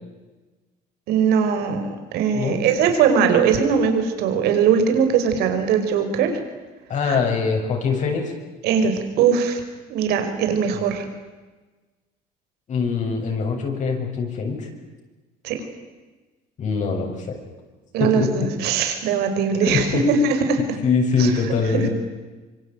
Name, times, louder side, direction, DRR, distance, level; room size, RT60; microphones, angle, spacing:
voice 1, 1.1-6.4 7.0-7.2 8.6-9.6 9.9-11.1 15.4-15.6 17.9-20.8 21.2-21.3 21.7-21.9, right 6 dB, 80° right, 7 dB, 5.3 m, -20 dB
voice 2, 6.9-8.3 12.7-14.7 16.6-17.4 18.0-18.3 19.6-20.0 20.8-21.9, left 5 dB, 50° left, 2 dB, 7.6 m, -23 dB
25.5 x 25.0 x 9.3 m, 1.2 s
cardioid pair, 125°, 16 cm